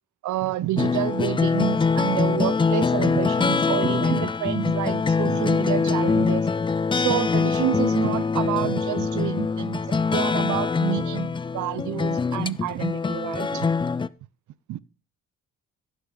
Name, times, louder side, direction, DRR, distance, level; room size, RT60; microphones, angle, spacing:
voice 1, 0.2-6.5 6.9-9.8 10.1-13.7 14.7-14.8, right 14 dB, 75° right, 0.7 m, -28 dB
sound 1, 0.8-14.1, left 4 dB, 15° left, 0.4 m, -23 dB
15.5 x 6.4 x 3.9 m
cardioid pair, 90°, 30 cm